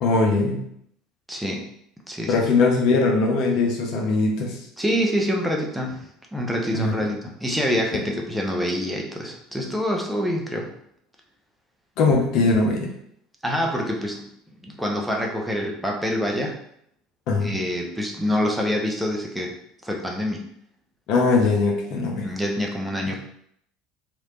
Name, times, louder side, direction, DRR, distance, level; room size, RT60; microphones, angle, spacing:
voice 1, 0.0-0.6 2.3-4.6 6.7-7.1 12.0-12.9 17.3-17.6 21.1-22.3, left 3 dB, 60° left, 0 dB, 0.7 m, -21 dB
voice 2, 1.3-1.7 2.1-2.4 4.8-10.7 13.4-14.3 14.6-16.6 17.4-19.6 19.8-20.5 22.1-23.2, equal, 5° right, 0 dB, 0.7 m, -26 dB
3.2 x 2.6 x 3.0 m, 0.71 s
hypercardioid pair, 70°, 0 cm